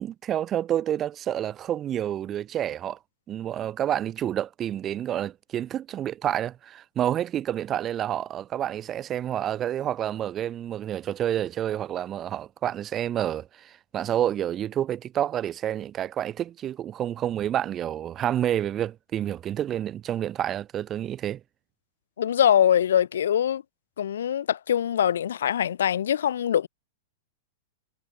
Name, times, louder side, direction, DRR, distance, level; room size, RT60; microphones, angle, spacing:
voice 1, 0.0-3.0 3.3-21.4, right 11 dB, 20° right, 2.2 m, -29 dB
voice 2, 22.2-23.6 24.0-26.7, left 9 dB, 90° left, 2.6 m, -23 dB
supercardioid pair, 155°, 0 cm